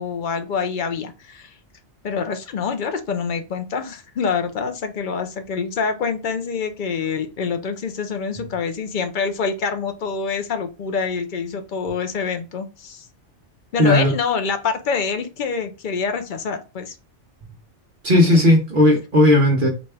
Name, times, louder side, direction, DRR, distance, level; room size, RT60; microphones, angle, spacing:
voice 1, 0.0-1.5 2.0-13.1 13.7-17.0, left 5 dB, 55° left, 0.6 m, -26 dB
voice 2, 13.8-14.1 18.0-19.7, left 1 dB, 50° right, 0.9 m, -15 dB
4.1 x 2.3 x 3.3 m
omnidirectional pair, 1.2 m